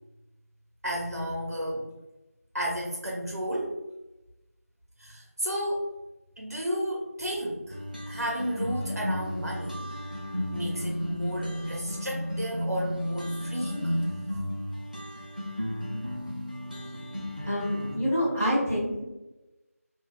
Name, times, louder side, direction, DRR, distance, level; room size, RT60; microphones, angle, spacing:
voice 1, 0.8-1.9 2.5-3.8 5.0-5.9 6.4-7.8 8.1-9.9 10.5-13.9, equal, 80° right, -1 dB, 0.6 m, -32 dB
sound 1, 7.7-18.0, equal, 30° right, 0.3 m, -33 dB
voice 2, 17.4-19.0, equal, 10° right, -14 dB, 0.7 m, -27 dB
3.5 x 2.2 x 2.2 m, 1.0 s
figure-of-eight pair, 175°, 8 cm